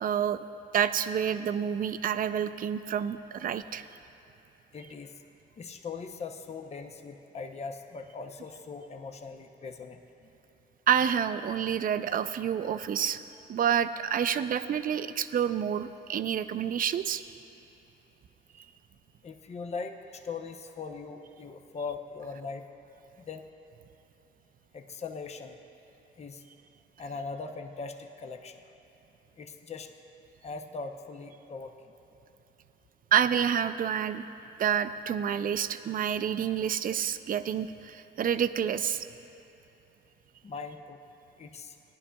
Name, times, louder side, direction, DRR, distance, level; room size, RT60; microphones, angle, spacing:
voice 1, 0.0-0.4 0.7-3.9 10.9-13.2 13.5-17.2 18.6-18.7 33.1-34.2 34.6-39.1, right 8 dB, 45° right, 11 dB, 0.4 m, -28 dB
voice 2, 4.7-5.2 5.6-10.0 19.2-22.6 23.2-23.5 24.7-25.6 26.2-26.4 27.0-28.6 29.4-29.9 30.4-31.9 40.4-41.0 41.4-41.7, left 4 dB, 35° left, 5 dB, 0.7 m, -40 dB
17.5 x 11.0 x 2.3 m, 2.9 s
cardioid pair, 90°, 20 cm